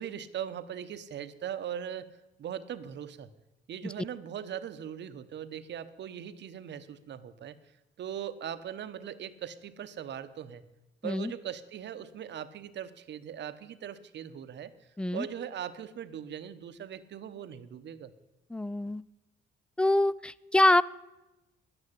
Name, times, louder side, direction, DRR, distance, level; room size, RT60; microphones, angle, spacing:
voice 1, 0.0-2.1 2.4-3.3 3.7-7.6 8.0-10.6 11.0-14.7 15.1-18.1, right 9 dB, 60° right, 12 dB, 1.0 m, -40 dB
voice 2, 18.5-19.0 19.8-20.8, left 1 dB, 5° left, 21 dB, 0.4 m, -25 dB
10.5 x 8.9 x 9.8 m, 0.99 s
cardioid pair, 90°, 20 cm